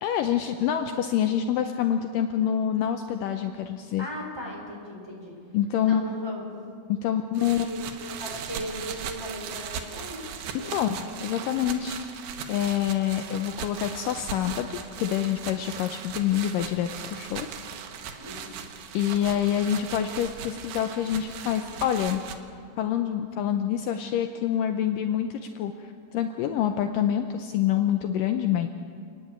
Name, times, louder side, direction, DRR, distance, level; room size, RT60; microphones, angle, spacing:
voice 1, 0.0-4.1 5.5-6.0 6.9-7.7 10.7-12.0 12.5-17.5 18.9-22.2 22.8-28.7, left 10 dB, 80° left, 7 dB, 2.1 m, -26 dB
voice 2, 4.0-5.3 5.8-6.5 7.4-10.2 10.6-10.9 18.2-18.6, equal, 5° right, -2 dB, 4.0 m, -38 dB
sound 1, 7.3-22.4, right 7 dB, 90° right, 3.1 m, -38 dB
29.0 x 10.5 x 8.8 m, 2.3 s
omnidirectional pair, 4.3 m